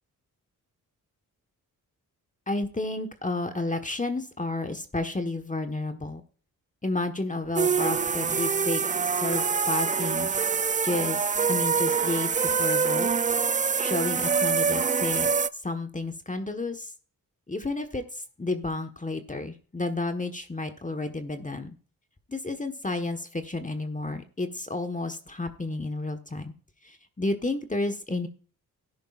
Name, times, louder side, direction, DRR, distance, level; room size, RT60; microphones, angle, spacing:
voice 1, 2.5-6.2 6.8-10.3 10.8-13.1 13.8-16.9 17.5-21.7 22.3-26.5 26.8-28.3, left 2 dB, 20° left, 7 dB, 1.4 m, -31 dB
sound 1, 7.6-15.5, right 6 dB, 20° right, 0.4 m, -25 dB
13.5 x 10.5 x 2.5 m, 0.40 s
cardioid pair, 55°, 36 cm